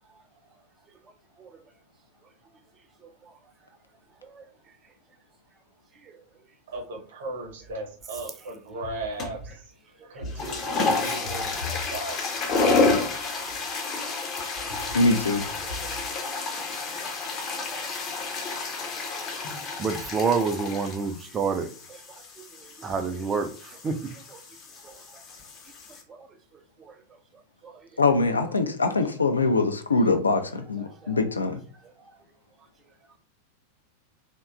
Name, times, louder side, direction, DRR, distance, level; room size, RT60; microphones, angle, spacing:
voice 1, 6.7-9.6 10.1-12.2 13.3-14.0 14.6-15.0 15.6-16.1, right 1 dB, 60° right, 0.8 m, -37 dB
sound 1, 9.2-9.5 10.2-26.0, left 3 dB, 30° left, 0.6 m, -30 dB
voice 2, 14.9-15.4 28.0-31.6, left 3 dB, 75° left, 0.4 m, -23 dB
voice 3, 19.8-21.7 22.8-23.5 23.8-24.0 24.3-24.4, right 5 dB, 20° right, 0.3 m, -27 dB
2.8 x 2.2 x 2.3 m
figure-of-eight pair, 90°, 0 cm